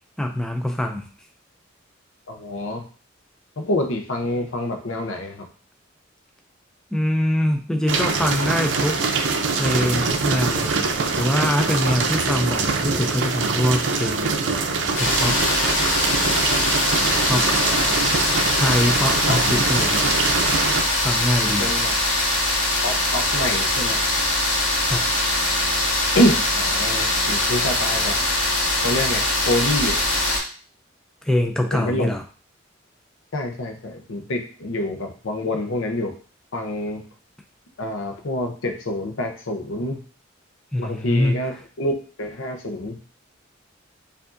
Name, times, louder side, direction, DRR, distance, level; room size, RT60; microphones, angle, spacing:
voice 1, 0.2-1.1 6.9-9.0 9.5-10.8 11.1-14.3 14.9-15.4 17.3-17.5 18.6-20.1 20.9-21.7 24.8-25.1 31.2-32.2 40.7-41.4, left 1 dB, 5° left, 3 dB, 0.3 m, -23 dB
voice 2, 2.3-2.8 3.6-5.5 17.3-18.0 19.3-19.4 21.6-21.9 22.8-24.0 26.1-28.2 28.4-30.2 31.7-32.1 33.3-36.2 36.5-37.0 37.8-40.0 40.8-41.9 42.2-43.0, left 1 dB, 85° left, 5 dB, 0.7 m, -26 dB
sound 1, 7.9-20.8, right 4 dB, 70° right, 0.5 m, -23 dB
electric toothbrush, 14.9-30.4, left 1 dB, 65° left, 1.1 m, -22 dB
4.6 x 2.6 x 2.5 m, 0.39 s
head